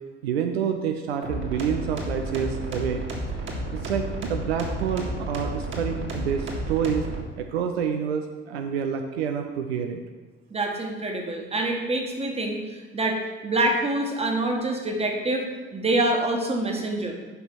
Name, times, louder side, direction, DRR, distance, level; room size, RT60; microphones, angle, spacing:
voice 1, 0.2-3.0 3.4-7.1 7.4-10.0, right 7 dB, 75° right, 5 dB, 0.5 m, -28 dB
sound 1, 1.2-7.2, right 1 dB, 40° right, 2.0 m, -31 dB
voice 2, 10.5-15.4 15.7-17.1, right 2 dB, 20° right, 1 dB, 1.5 m, -26 dB
5.7 x 5.6 x 6.1 m, 1.3 s
figure-of-eight pair, 50°, 31 cm